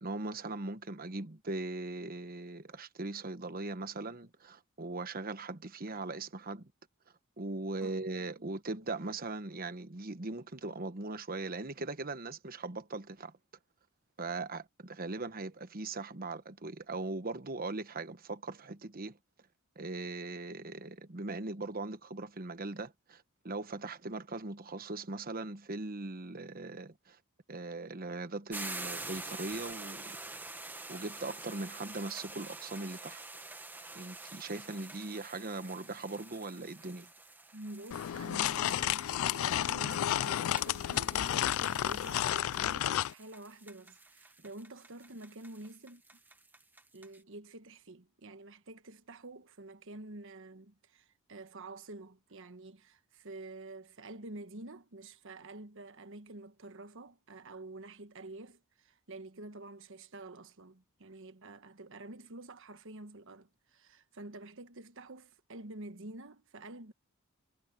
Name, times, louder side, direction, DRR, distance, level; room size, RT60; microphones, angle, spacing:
voice 1, 0.0-6.7 7.4-13.3 14.2-19.2 19.8-27.2 27.5-30.2 30.9-33.2 33.9-37.1, right 3 dB, 40° right, 1.2 m, -40 dB
sound 1, 28.5-47.2, right 2 dB, 10° right, 1.1 m, -47 dB
voice 2, 37.5-46.0 46.9-66.9, right 2 dB, 60° right, 1.3 m, -48 dB
sound 2, 37.9-43.1, left 11 dB, 65° left, 0.3 m, -31 dB
head